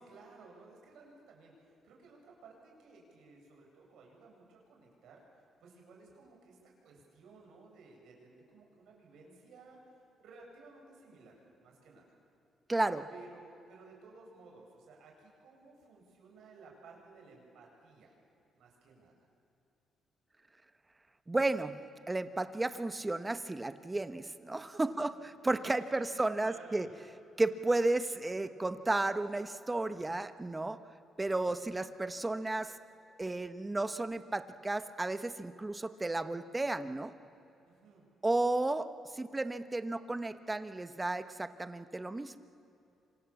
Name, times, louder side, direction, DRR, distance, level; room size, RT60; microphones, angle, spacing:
voice 1, 0.0-5.2 5.6-12.0 13.1-18.1 18.6-19.1 25.5-26.8 37.7-38.0, right 4 dB, 75° right, 0 dB, 7.2 m, -56 dB
voice 2, 12.7-13.1 21.3-21.7 22.1-26.9 27.4-30.8 31.2-32.8 33.2-37.1 38.2-42.4, right 2 dB, 15° right, 11 dB, 1.2 m, -33 dB
27.0 x 25.5 x 7.3 m, 2.8 s
cardioid pair, 90°, 0 cm